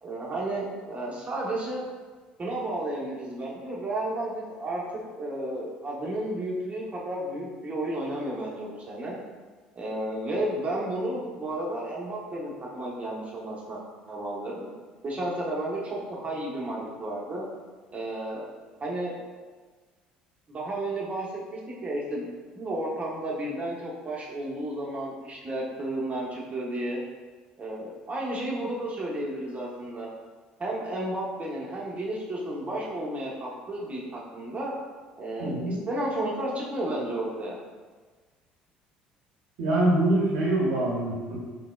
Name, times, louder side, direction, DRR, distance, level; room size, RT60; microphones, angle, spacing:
voice 1, 0.0-1.8 2.4-4.8 5.1-9.2 9.8-13.8 14.1-14.7 15.0-17.5 17.9-18.5 18.8-19.1 20.5-22.3 22.5-27.0 27.6-30.1 30.6-34.7 35.2-37.6, right 1 dB, 30° right, -4 dB, 1.0 m, -32 dB
voice 2, 35.4-35.8 39.6-41.4, right 1 dB, 65° right, -5 dB, 0.8 m, -24 dB
3.9 x 3.3 x 2.3 m, 1.4 s
figure-of-eight pair, 60°, 4 cm